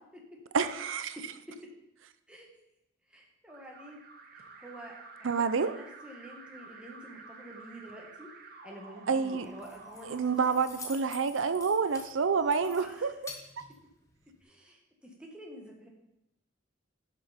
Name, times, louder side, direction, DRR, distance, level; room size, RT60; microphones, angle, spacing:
voice 1, 0.5-1.2 5.2-5.8 9.1-9.5 10.1-12.8, right 5 dB, 85° right, 12 dB, 0.6 m, -28 dB
voice 2, 1.1-1.7 2.3-2.5 3.1-4.0 4.3-10.6 12.6-13.1 14.4-15.9, equal, 5° right, -1 dB, 1.8 m, -49 dB
Alarm, 3.5-11.4, right 3 dB, 50° right, 1.2 m, -51 dB
Keys jangling, 9.4-14.4, left 3 dB, 15° left, 1.2 m, -49 dB
11.0 x 6.2 x 4.4 m, 0.86 s
head